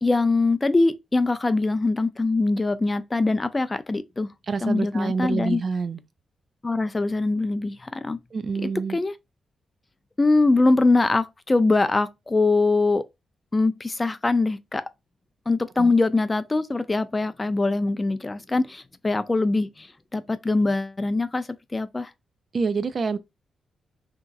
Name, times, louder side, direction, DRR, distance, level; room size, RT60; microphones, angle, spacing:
voice 1, 0.0-4.3 4.6-5.6 6.6-8.2 8.6-9.1 10.2-13.0 13.5-14.8 15.5-19.9 20.1-21.5 21.7-22.1, left 3 dB, 25° left, 0.4 m, -22 dB
voice 2, 4.5-6.0 8.3-9.0 15.8-15.9 22.5-23.2, right 4 dB, 55° right, 0.3 m, -27 dB
2.8 x 2.7 x 2.3 m
cardioid pair, 70°, 0 cm